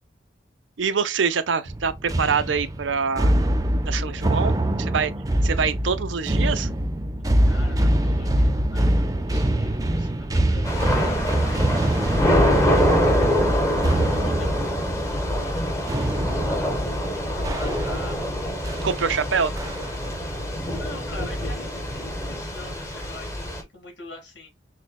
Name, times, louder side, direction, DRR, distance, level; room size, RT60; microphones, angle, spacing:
voice 1, 0.8-3.4 3.8-5.1 5.4-6.7 18.8-19.5, right 6 dB, 85° right, 0.6 m, -25 dB
sound 1, 1.7-18.2 18.6-18.9 19.6-20.1, right 1 dB, 20° right, 0.5 m, -24 dB
voice 2, 7.4-16.3 16.5-19.8 20.3-24.5, left 2 dB, 65° left, 2.4 m, -44 dB
Thunder / Rain, 10.6-23.6, equal, 15° left, 1.0 m, -25 dB
6.3 x 2.2 x 2.2 m
head